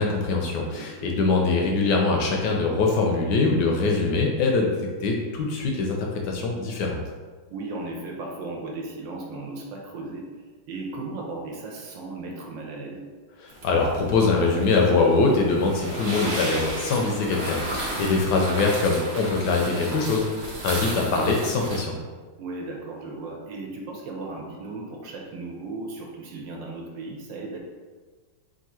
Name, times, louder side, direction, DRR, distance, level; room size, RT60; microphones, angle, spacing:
voice 1, 0.0-4.7 5.0-6.0 6.2-7.0 13.4-21.9, left 3 dB, 70° left, 0 dB, 1.1 m, -23 dB
voice 2, 0.7-1.2 7.5-10.3 10.7-13.1 22.4-27.6, right 2 dB, 75° right, 0 dB, 1.4 m, -36 dB
sound 1, 13.5-21.8, right 1 dB, 55° right, 0.7 m, -33 dB
3.6 x 2.5 x 4.2 m, 1.4 s
omnidirectional pair, 2.1 m